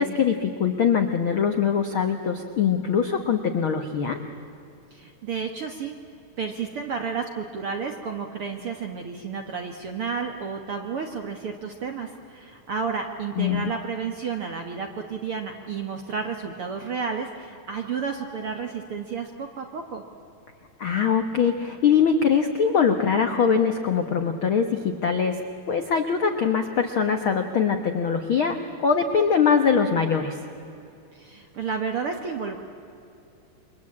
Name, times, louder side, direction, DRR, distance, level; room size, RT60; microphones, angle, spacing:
voice 1, 0.0-4.2 13.4-13.7 20.8-25.4 25.7-28.6 28.8-30.4, left 6 dB, 85° left, 6 dB, 1.1 m, -22 dB
voice 2, 4.9-5.9 6.4-20.0 31.1-32.6, right 5 dB, 60° right, 3 dB, 1.5 m, -31 dB
28.5 x 23.5 x 8.6 m, 2.7 s
omnidirectional pair, 4.4 m